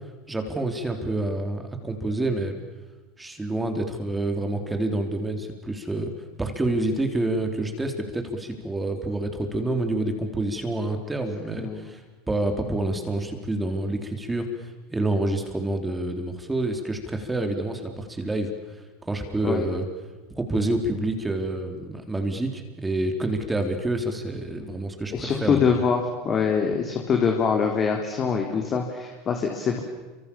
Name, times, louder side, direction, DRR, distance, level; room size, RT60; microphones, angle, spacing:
voice 1, 0.3-2.6 3.2-6.1 6.4-19.9 20.4-25.8, right 2 dB, 10° right, 5 dB, 4.1 m, -28 dB
voice 2, 25.1-29.8, left 6 dB, 35° left, 3 dB, 3.7 m, -24 dB
29.5 x 26.0 x 7.3 m, 1.2 s
hypercardioid pair, 85°, 0 cm